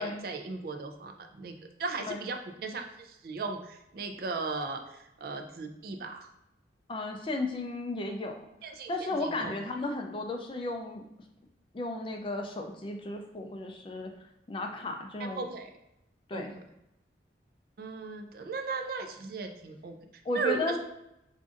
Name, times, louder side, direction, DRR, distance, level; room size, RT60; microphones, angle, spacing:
voice 1, 0.0-6.3 8.6-9.6 15.2-15.7 16.3-16.5 17.8-20.0 20.3-20.8, right 4 dB, 50° right, 5 dB, 0.4 m, -37 dB
voice 2, 6.9-8.4 8.9-11.0 11.7-14.1 14.5-15.5 16.3-16.5 20.2-20.8, left 2 dB, 25° left, 3 dB, 0.3 m, -34 dB
4.8 x 2.6 x 2.4 m, 0.85 s
head